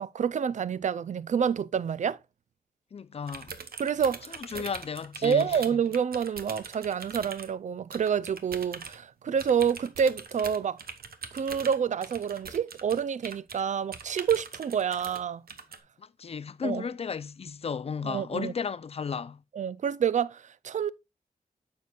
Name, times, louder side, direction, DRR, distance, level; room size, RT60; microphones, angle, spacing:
voice 1, 0.0-2.2 3.8-4.6 5.2-10.8 11.3-15.4 16.6-16.9 18.0-18.5 19.5-20.9, right 7 dB, 55° right, 0.4 m, -28 dB
voice 2, 2.9-3.5 4.3-5.6 16.0-19.4, left 6 dB, 40° left, 0.4 m, -34 dB
sound 1, 3.3-7.5 7.9-9.0 9.4-13.6 13.9-15.2 15.5-15.8, right 5 dB, 80° right, 1.0 m, -42 dB
9.3 x 6.7 x 2.3 m
wide cardioid pair, 135°, 15 cm